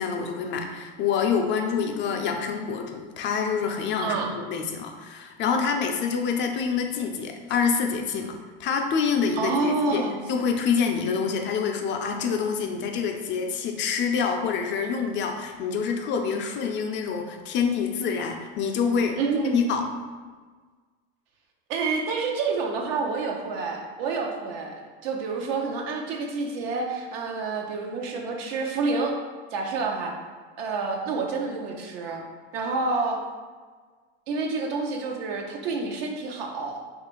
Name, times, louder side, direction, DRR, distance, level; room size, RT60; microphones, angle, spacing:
voice 1, 0.0-10.0 10.3-19.2 19.4-19.8, left 6 dB, 40° left, 4 dB, 0.4 m, -26 dB
voice 2, 4.0-4.3 9.4-10.2 19.2-19.6 21.7-29.1 29.5-30.1 30.6-32.2 32.5-33.2 34.3-36.8, right 4 dB, 70° right, 1 dB, 0.7 m, -28 dB
3.2 x 2.4 x 3.0 m, 1.5 s
hypercardioid pair, 95°, 30 cm